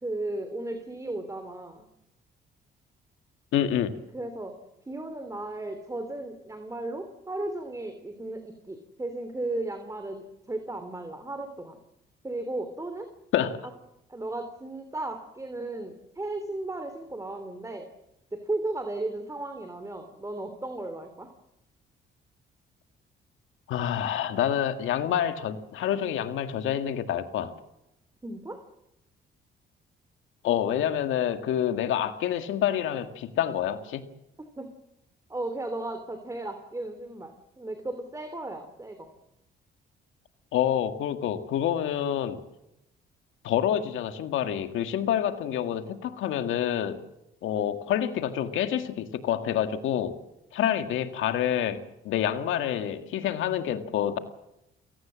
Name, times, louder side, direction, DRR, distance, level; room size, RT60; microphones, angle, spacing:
voice 1, 0.0-1.9 4.1-4.6 4.9-11.8 12.2-13.1 14.1-17.9 18.3-21.3 28.2-28.6 34.6-34.7 35.3-39.1, right 2 dB, 15° right, 8 dB, 3.0 m, -35 dB
voice 2, 3.5-3.9 13.3-13.6 23.7-27.5 30.4-34.1 40.5-42.4 43.4-47.0 47.4-50.2 50.5-54.2, left 10 dB, 85° left, 8 dB, 2.0 m, -27 dB
29.0 x 17.5 x 7.5 m, 0.87 s
cardioid pair, 90°, 20 cm